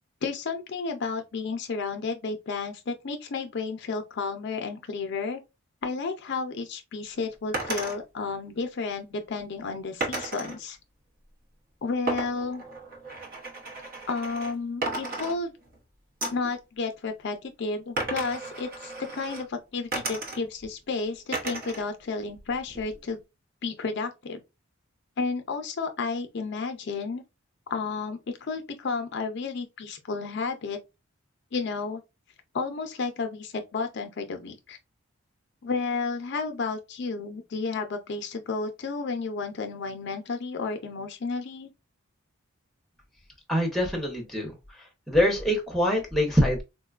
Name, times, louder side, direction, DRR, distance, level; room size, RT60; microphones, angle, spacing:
voice 1, 0.2-5.4 5.8-10.8 11.8-12.6 14.1-15.5 16.3-23.2 23.6-24.4 25.2-27.2 27.7-30.8 31.5-32.0 32.5-34.8 35.6-41.7, left 4 dB, 55° left, 0.4 m, -32 dB
sound 1, 7.5-8.0 10.0-10.6 12.1-14.5 14.8-15.8 16.2-16.5 18.0-19.4 19.9-20.7 21.3-21.9 22.2-23.0, right 2 dB, 45° right, 0.8 m, -34 dB
voice 2, 43.5-44.5 45.1-46.6, equal, ahead, 0.7 m, -24 dB
3.9 x 2.2 x 2.3 m
head